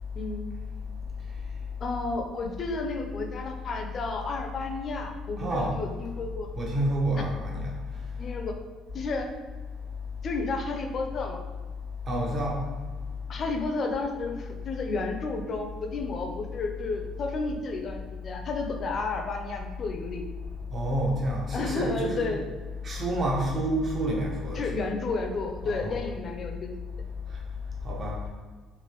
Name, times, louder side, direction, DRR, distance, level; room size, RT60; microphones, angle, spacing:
voice 1, 0.1-0.5 1.8-6.5 7.1-7.2 8.2-8.5 8.9-9.3 10.2-11.4 13.3-18.0 18.2-20.2 21.5-22.4 24.5-26.7, left 3 dB, 40° left, 3 dB, 0.4 m, -32 dB
voice 2, 5.4-5.8 6.6-7.7 12.1-12.6 20.7-22.3 22.8-24.7 25.6-26.0 27.8-28.2, right 1 dB, 35° right, -2 dB, 0.7 m, -28 dB
3.1 x 2.5 x 2.9 m, 1.4 s
cardioid pair, 125°, 0 cm